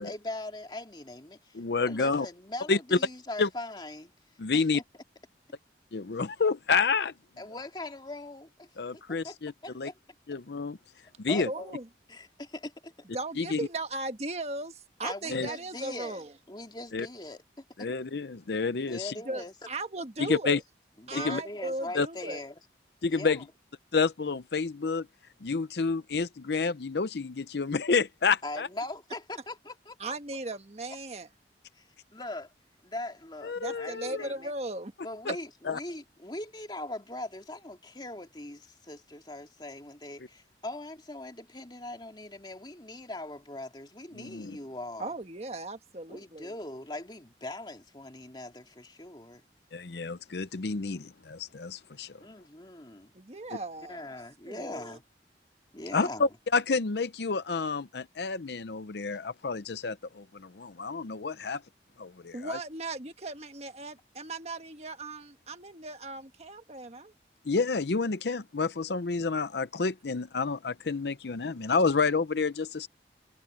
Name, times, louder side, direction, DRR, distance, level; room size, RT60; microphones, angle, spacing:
voice 1, 0.0-1.6 1.9-4.1 4.5-4.8 7.4-8.7 9.2-9.3 9.6-10.0 11.3-11.8 12.1-13.1 15.0-16.2 16.5-17.9 18.9-19.5 21.0-22.6 23.1-23.4 28.4-30.2 31.7-32.5 32.8-34.5 35.0-45.1 46.1-49.4 52.2-53.1 53.9-55.0 55.7-56.3, left 2 dB, 25° left, 2.7 m, -41 dB
voice 2, 1.5-2.3 2.7-3.0 3.4-3.5 4.4-4.8 5.9-7.1 8.8-9.9 10.3-10.8 11.2-11.5 13.4-13.6 15.3-15.5 16.9-17.1 17.8-19.1 20.2-20.6 21.1-21.4 21.9-22.1 23.0-23.4 23.9-25.1 25.4-28.7 33.4-34.3 35.3-35.4 35.7-35.8 44.1-44.6 49.7-52.2 55.9-61.6 62.0-62.6 67.5-72.9, left 4 dB, 65° left, 0.7 m, -29 dB
voice 3, 11.4-11.9 13.1-16.3 19.2-20.6 21.1-22.4 30.0-31.3 33.6-34.9 45.0-46.5 53.1-54.1 54.5-55.0 62.3-67.1, right 2 dB, 35° right, 1.5 m, -37 dB
head